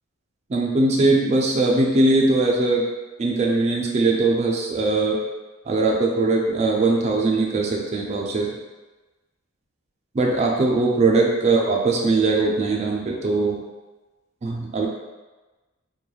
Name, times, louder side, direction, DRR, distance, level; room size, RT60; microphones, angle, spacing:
voice 1, 0.5-2.8 3.2-5.2 5.7-8.5 10.1-13.6 14.4-14.9, right 3 dB, 30° right, -1 dB, 0.4 m, -20 dB
2.3 x 2.2 x 3.1 m, 1.2 s
head